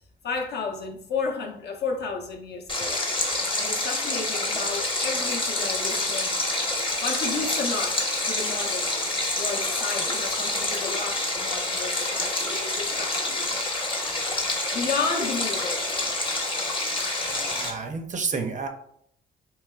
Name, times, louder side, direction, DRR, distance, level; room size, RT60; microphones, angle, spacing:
voice 1, 0.2-3.0 3.6-6.4 7.0-9.0 9.4-13.6 14.4-16.2, left 4 dB, 55° left, 1 dB, 0.7 m, -32 dB
Stream, 2.7-17.7, left 2 dB, 25° left, 0.8 m, -27 dB
voice 2, 17.2-18.7, right 5 dB, 40° right, 6 dB, 0.5 m, -31 dB
3.1 x 2.9 x 2.3 m, 0.69 s
cardioid pair, 90°, 20 cm